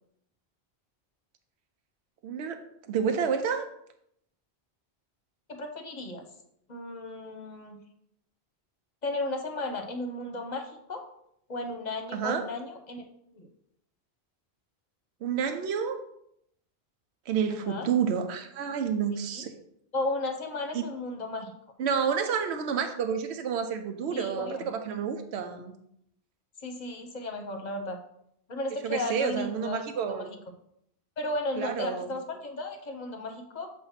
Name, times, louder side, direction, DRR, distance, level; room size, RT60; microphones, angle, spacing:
voice 1, 2.2-2.6 2.9-3.7 12.1-12.4 15.2-16.0 17.3-19.5 20.7-20.8 21.8-25.7 28.8-30.3 31.6-32.1, right 7 dB, 90° right, 7 dB, 0.9 m, -29 dB
voice 2, 5.5-6.2 6.7-7.8 9.0-11.0 11.5-13.1 13.3-13.5 17.5-17.9 19.3-19.4 19.9-21.5 24.1-24.7 26.6-28.0 28.5-29.8 30.1-30.4 31.2-33.7, left 2 dB, 45° left, 4 dB, 0.8 m, -34 dB
7.1 x 2.6 x 5.6 m, 0.74 s
omnidirectional pair, 1.1 m